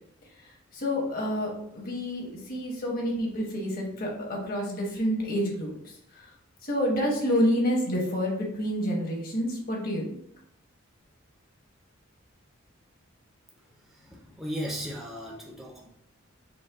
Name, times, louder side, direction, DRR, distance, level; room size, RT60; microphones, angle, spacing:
voice 1, 0.7-5.7 6.2-6.3 6.6-10.2, equal, 45° left, -1 dB, 1.1 m, -28 dB
voice 2, 13.8-15.9, equal, ahead, -2 dB, 0.5 m, -36 dB
5.2 x 2.2 x 3.5 m, 0.71 s
head